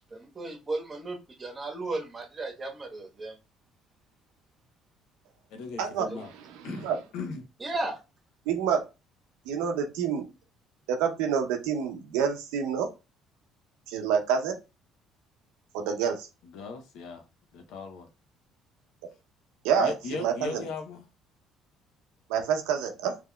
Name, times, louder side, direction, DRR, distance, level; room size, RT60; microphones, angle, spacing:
voice 1, 0.1-3.3 6.1-6.2 7.6-8.0, right 2 dB, 25° right, 2 dB, 1.1 m, -35 dB
voice 2, 5.5-6.3 6.6-7.5 16.4-17.3 17.5-18.1 19.8-21.0, left 4 dB, 75° left, 5 dB, 0.7 m, -38 dB
voice 3, 8.5-8.8 9.5-10.2 10.9-12.9 13.9-14.6 15.7-16.3 19.6-19.9 20.2-20.6 22.3-23.2, right 7 dB, 90° right, 5 dB, 0.6 m, -27 dB
3.6 x 2.9 x 2.2 m, 0.27 s
supercardioid pair, 85°, 0 cm